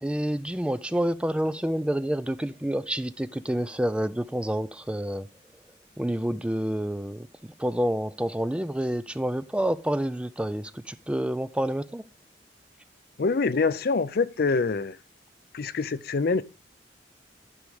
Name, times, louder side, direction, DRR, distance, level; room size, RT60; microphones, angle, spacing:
voice 1, 0.0-5.3 6.0-7.3 7.6-12.0, right 1 dB, 5° right, 0.3 m, -28 dB
voice 2, 13.2-15.0 15.5-16.4, left 4 dB, 55° left, 0.4 m, -25 dB
11.5 x 5.3 x 4.7 m
head